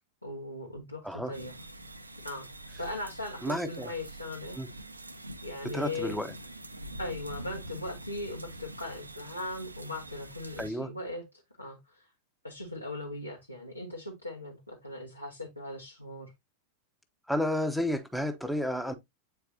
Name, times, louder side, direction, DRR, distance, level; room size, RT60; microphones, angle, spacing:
voice 1, 0.2-1.5 2.2-2.5 2.8-4.6 5.4-6.2 7.0-11.2 11.6-12.1 12.4-16.3, left 2 dB, 85° left, 1.3 m, -39 dB
sound 1, 1.3-10.7, right 1 dB, 85° right, 0.6 m, -45 dB
voice 2, 3.4-3.9 4.5-4.7 5.7-6.3 10.6-10.9 17.3-18.9, equal, ahead, 0.9 m, -31 dB
8.5 x 4.5 x 2.7 m
figure-of-eight pair, 90°, 0 cm